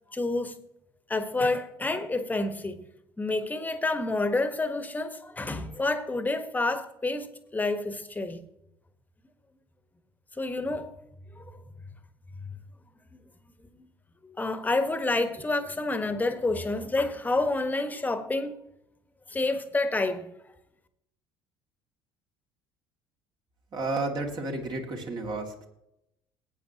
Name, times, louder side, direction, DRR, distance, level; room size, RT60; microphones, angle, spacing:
voice 1, 0.1-0.6 1.1-2.8 3.2-7.3 7.5-8.4 10.4-10.9 11.3-11.4 12.4-12.6 13.1-13.2 13.8-13.9 14.2-18.5 19.3-20.3, left 2 dB, 15° left, 1.5 m, -28 dB
voice 2, 23.7-25.7, right 2 dB, 40° right, 2.5 m, -32 dB
19.0 x 9.3 x 3.0 m
figure-of-eight pair, 60°, 12 cm